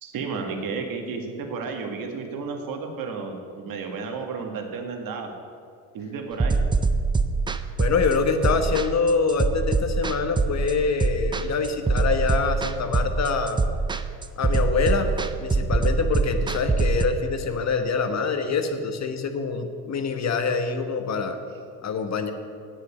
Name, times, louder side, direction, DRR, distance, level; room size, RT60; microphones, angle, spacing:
voice 1, 0.0-5.3 5.9-6.6, right 4 dB, 60° right, 3 dB, 1.8 m, -32 dB
sound 1, 6.4-17.1, right 3 dB, 10° right, 0.5 m, -23 dB
voice 2, 7.8-13.6 14.4-15.1 15.4-21.4 21.8-22.3, left 5 dB, 40° left, 7 dB, 1.2 m, -25 dB
8.8 x 7.6 x 8.1 m, 2.3 s
supercardioid pair, 90°, 40 cm